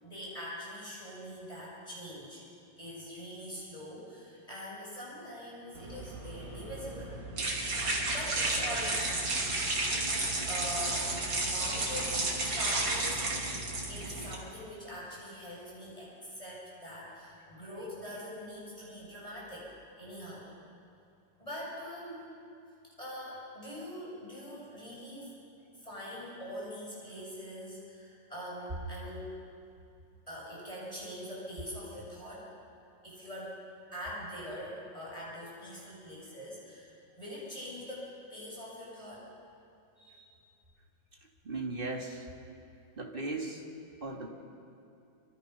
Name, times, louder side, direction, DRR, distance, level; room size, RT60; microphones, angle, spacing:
voice 1, 0.0-2.4 2.8-7.2 8.1-9.5 10.5-13.2 13.9-19.7 20.0-20.5 21.4-22.2 23.0-25.4 25.8-29.3 30.3-32.5 33.0-33.6 33.9-36.9 37.2-39.2 40.0-40.3, equal, 15° left, -6 dB, 7.3 m, -43 dB
sound 1, 5.8-14.3, right 2 dB, 75° right, 3.6 m, -32 dB
voice 2, 41.4-42.2 43.0-43.6 44.0-44.3, right 2 dB, 30° right, 0 dB, 2.5 m, -36 dB
27.5 x 26.0 x 5.6 m, 2.6 s
omnidirectional pair, 2.1 m